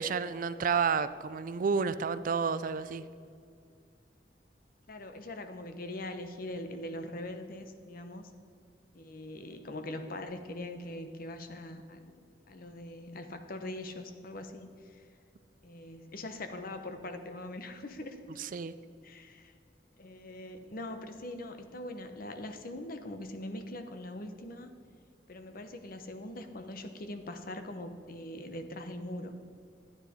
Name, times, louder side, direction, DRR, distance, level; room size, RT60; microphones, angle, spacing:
voice 1, 0.0-3.0 18.4-18.7, right 5 dB, 50° right, 14 dB, 0.4 m, -30 dB
voice 2, 4.9-8.3 8.9-15.0 15.6-18.2 19.0-19.5 20.0-24.7 25.3-29.3, left 1 dB, 55° left, 7 dB, 1.0 m, -42 dB
13.0 x 9.4 x 5.1 m, 2.3 s
head